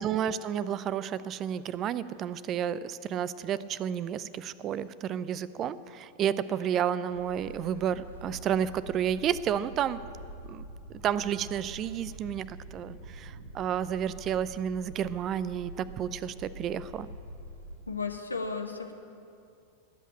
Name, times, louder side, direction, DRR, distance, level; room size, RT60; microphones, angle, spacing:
voice 1, 0.0-10.0 10.5-10.6 11.0-17.1, right 9 dB, 30° right, 17 dB, 0.6 m, -31 dB
sound 1, 7.1-17.8, right 1 dB, 75° right, 3.4 m, -46 dB
voice 2, 17.9-19.0, left 4 dB, 80° left, 4 dB, 1.4 m, -34 dB
20.0 x 8.3 x 8.7 m, 2.6 s
figure-of-eight pair, 90°, 0 cm